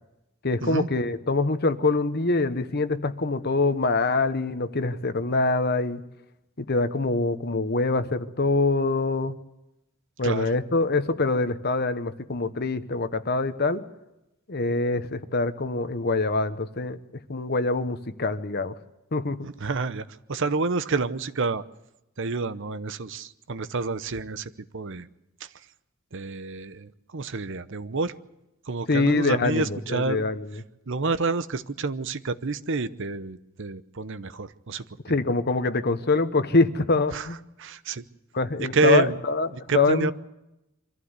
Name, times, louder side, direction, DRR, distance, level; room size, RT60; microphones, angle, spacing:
voice 1, 0.4-6.0 6.6-9.3 10.2-13.8 14.5-17.0 17.3-18.7 19.1-19.4 28.9-30.6 35.0-37.4 38.3-39.5 39.7-40.1, left 3 dB, 50° left, 11 dB, 1.1 m, -24 dB
voice 2, 19.4-21.6 22.2-25.1 25.4-25.5 26.1-28.1 28.7-30.3 30.9-34.8 37.1-37.3 37.6-38.0 38.6-39.2 39.5-40.1, right 3 dB, 60° right, 13 dB, 0.8 m, -28 dB
24.5 x 15.0 x 8.1 m, 0.91 s
head